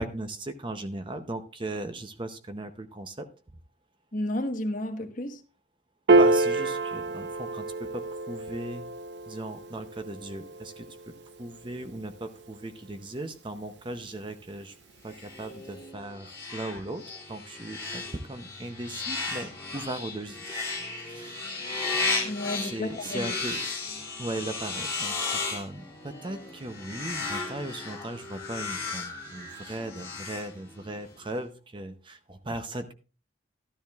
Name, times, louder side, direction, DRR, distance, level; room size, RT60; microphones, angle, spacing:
voice 1, 0.0-3.3 6.1-8.9 9.3-14.8 15.0-20.5 21.0-21.5 22.6-23.6 24.2-32.9, right 1 dB, 25° right, 0.7 m, -38 dB
voice 2, 4.1-5.4 22.2-23.3, left 1 dB, 45° left, 1.2 m, -32 dB
Piano, 6.1-12.7, right 2 dB, 65° right, 0.7 m, -28 dB
sound 1, 15.1-31.0, left 3 dB, 15° left, 2.5 m, -35 dB
13.0 x 12.5 x 2.4 m
head